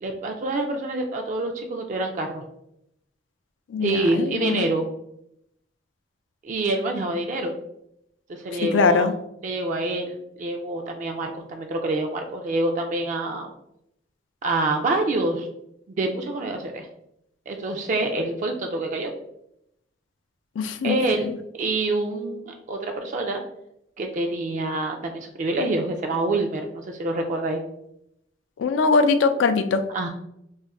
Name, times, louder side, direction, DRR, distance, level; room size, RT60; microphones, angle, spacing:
voice 1, 0.0-2.4 3.8-4.9 6.4-7.5 8.3-9.1 9.4-13.5 14.4-15.5 16.0-16.9 17.5-19.1 20.8-23.4 24.0-27.6 29.9-30.1, right 2 dB, 40° right, 3 dB, 0.3 m, -26 dB
voice 2, 3.7-4.7 8.5-9.1 20.6-21.4 28.6-29.8, left 4 dB, 90° left, 9 dB, 0.4 m, -22 dB
2.5 x 2.4 x 4.0 m, 0.78 s
head